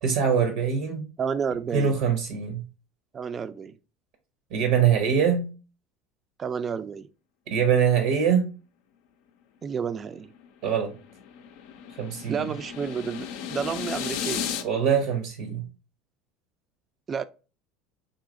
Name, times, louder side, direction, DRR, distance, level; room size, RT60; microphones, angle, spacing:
voice 1, 0.0-1.1 1.7-2.6 4.5-5.5 7.5-8.5 10.6-10.9 12.0-12.4 14.6-15.7, right 7 dB, 75° right, 0.7 m, -23 dB
voice 2, 1.2-2.0 3.1-3.7 6.4-7.1 9.6-10.3 12.3-14.6 17.1-17.2, right 6 dB, 35° right, 0.3 m, -30 dB
sound 1, 10.3-14.6, left 8 dB, 70° left, 0.4 m, -34 dB
3.9 x 2.7 x 2.4 m
hypercardioid pair, 85°, 0 cm